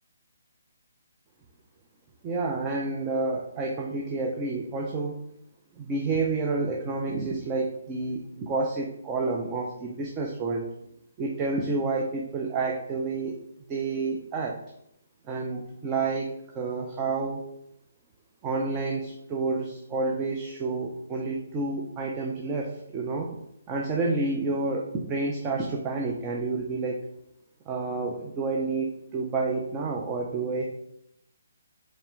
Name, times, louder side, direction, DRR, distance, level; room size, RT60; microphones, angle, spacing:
voice 1, 2.2-5.2 5.8-10.7 11.2-13.4 13.7-14.6 15.3-17.5 18.4-23.3 23.7-27.0 27.7-30.6, right 3 dB, 20° right, 0 dB, 0.5 m, -29 dB
4.2 x 3.2 x 3.7 m, 0.77 s
hypercardioid pair, 150°, 0 cm